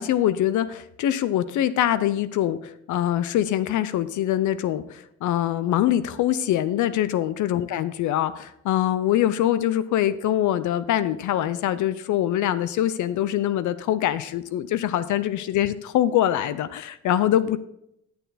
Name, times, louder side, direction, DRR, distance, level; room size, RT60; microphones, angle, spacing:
voice 1, 0.0-17.6, left 12 dB, 75° left, 15 dB, 0.6 m, -24 dB
11.0 x 6.9 x 4.1 m, 0.77 s
cardioid pair, 90°, 30 cm